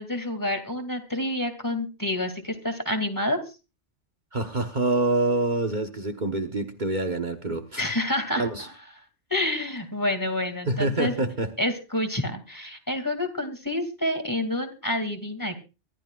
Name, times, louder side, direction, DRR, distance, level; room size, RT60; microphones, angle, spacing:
voice 1, 0.0-3.4 7.8-8.7 9.3-11.3 11.6-15.6, left 1 dB, 15° left, 6 dB, 2.5 m, -28 dB
voice 2, 4.3-7.8 8.4-8.7 10.7-11.5, right 2 dB, 40° right, 4 dB, 1.4 m, -26 dB
24.5 x 13.0 x 2.5 m, 0.31 s
omnidirectional pair, 1.2 m